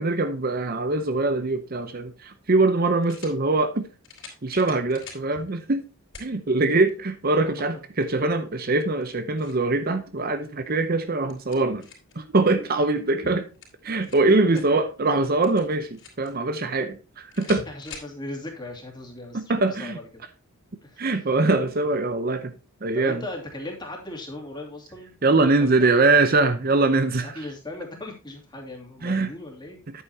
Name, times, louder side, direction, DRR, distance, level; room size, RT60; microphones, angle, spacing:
voice 1, 0.0-3.9 4.4-5.8 6.2-11.9 12.2-13.4 13.8-17.0 17.4-17.6 19.3-20.0 21.0-22.5 22.8-23.2 25.2-27.5 29.0-29.3 29.9-30.0, right 3 dB, 40° right, 0.7 m, -23 dB
sound 1, 1.8-1.9 3.0-3.4 4.0-5.3 6.1-6.3 6.9-7.0 8.8-9.7 11.0-12.2 13.4-14.4 15.4-16.3 17.3-18.1, left 5 dB, 55° left, 4.0 m, -44 dB
voice 2, 17.4-20.2 20.8-21.1 22.9-25.2 25.4-26.1 27.2-29.8, left 2 dB, 20° left, 2.6 m, -38 dB
10.0 x 8.6 x 2.8 m
head